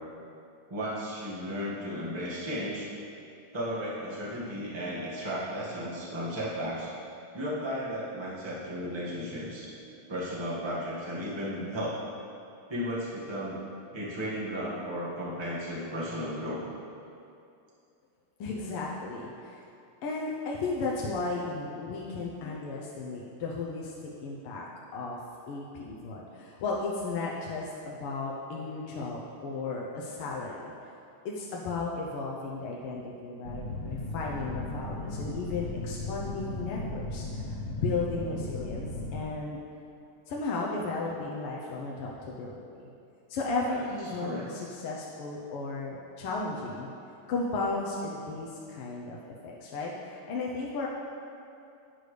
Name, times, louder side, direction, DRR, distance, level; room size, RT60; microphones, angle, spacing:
voice 1, 0.7-2.9 3.5-6.9 7.3-9.7 10.1-12.0 12.7-13.6 13.9-16.6 22.4-22.5 44.2-44.4, equal, 15° right, -7 dB, 1.5 m, -34 dB
voice 2, 18.4-19.6 20.0-23.9 24.2-24.7 24.9-25.2 25.5-30.7 31.3-39.6 40.3-42.9 43.3-46.9 47.3-49.2 49.4-50.9, left 3 dB, 80° left, -3 dB, 1.8 m, -34 dB
sound 1, 33.4-39.2, left 2 dB, 50° left, 0.8 m, -36 dB
12.0 x 8.4 x 3.3 m, 2.6 s
omnidirectional pair, 2.4 m